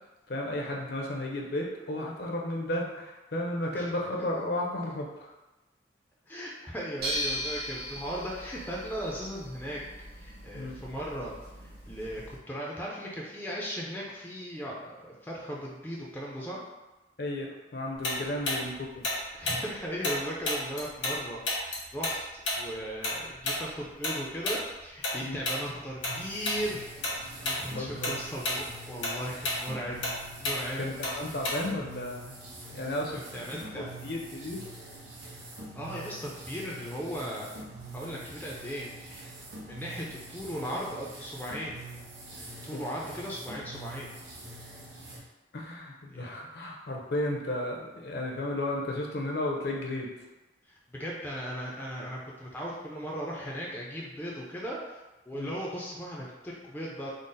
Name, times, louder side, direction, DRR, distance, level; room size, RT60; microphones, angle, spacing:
voice 1, 0.3-5.3 10.5-10.8 17.2-17.5 17.7-18.7 25.2-25.4 27.7-28.1 30.8-32.3 32.7-34.6 42.7-42.8 45.5-50.1 55.3-55.5, left 1 dB, 55° left, -1 dB, 0.6 m, -33 dB
voice 2, 6.3-9.8 10.2-11.3 11.6-16.6 18.1-18.3 19.3-22.2 22.6-30.0 30.4-30.8 33.1-33.9 35.8-37.5 37.9-39.2 39.6-41.8 42.3-44.1 46.1-46.3 50.9-55.0 55.3-57.1, equal, 10° left, -4 dB, 0.4 m, -37 dB
sound 1, 7.0-12.4, equal, 55° right, 1.0 m, -38 dB
Tick-tock, 18.0-21.2 21.5-26.2 26.4-26.7 27.0-27.6 27.9-31.9, left 2 dB, 80° left, 1.1 m, -31 dB
sound 2, 26.1-45.2, right 2 dB, 80° right, 0.9 m, -45 dB
3.8 x 2.0 x 3.8 m, 1.1 s
head